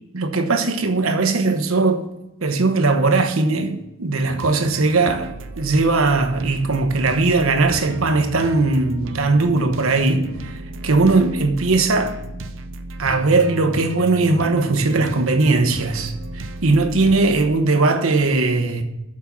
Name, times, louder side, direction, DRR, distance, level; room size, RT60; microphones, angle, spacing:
voice 1, 0.1-2.1 2.4-10.5 10.8-12.2 13.0-18.8, right 3 dB, 75° right, 1.0 m, -19 dB
sound 1, 4.3-17.5, right 2 dB, 60° right, 0.6 m, -34 dB
7.3 x 5.4 x 6.8 m
head